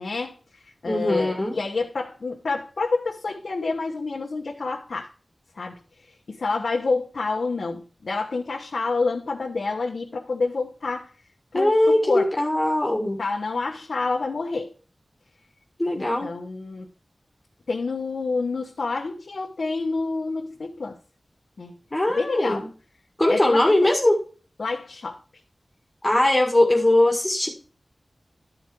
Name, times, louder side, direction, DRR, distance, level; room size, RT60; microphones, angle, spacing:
voice 1, 0.0-5.1 5.5-5.8 6.3-11.1 11.5-12.3 13.2-14.7 15.9-16.9 17.7-21.0 21.6-21.8 22.1-22.6 23.3-23.9 24.6-25.2, left 3 dB, 85° left, 1.1 m, -28 dB
voice 2, 0.9-1.6 11.5-13.2 15.8-16.3 21.9-22.7 23.2-24.2 26.0-27.5, left 1 dB, 25° left, 2.0 m, -20 dB
12.0 x 4.9 x 4.5 m
wide cardioid pair, 65°, 0 cm